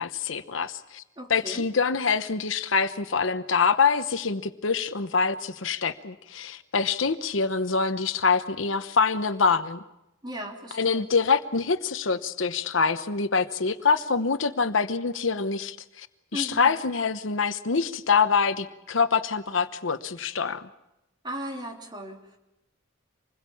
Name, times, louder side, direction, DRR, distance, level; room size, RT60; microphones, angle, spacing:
voice 1, 0.0-1.0 1.3-9.8 10.7-16.1 16.3-20.7, left 5 dB, 75° left, 11 dB, 1.0 m, -25 dB
voice 2, 1.2-1.6 10.2-11.1 16.3-16.7 21.2-22.4, equal, 25° right, 1 dB, 3.2 m, -37 dB
26.5 x 21.0 x 7.1 m, 0.91 s
head